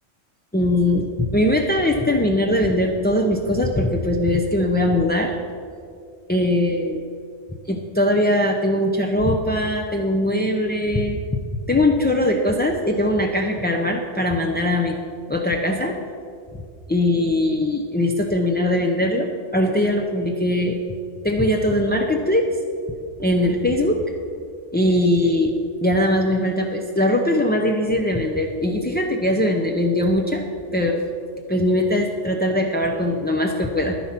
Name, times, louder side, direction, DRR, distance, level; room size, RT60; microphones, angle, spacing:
voice 1, 0.5-5.3 6.3-7.0 7.7-11.2 11.7-15.0 15.3-16.0 16.9-19.3 19.5-20.8 21.2-22.6 23.2-24.0 24.7-30.4 30.7-31.0 31.5-33.9, left 1 dB, 15° left, 1 dB, 0.3 m, -21 dB
11.0 x 10.0 x 5.8 m, 2.2 s
omnidirectional pair, 1.4 m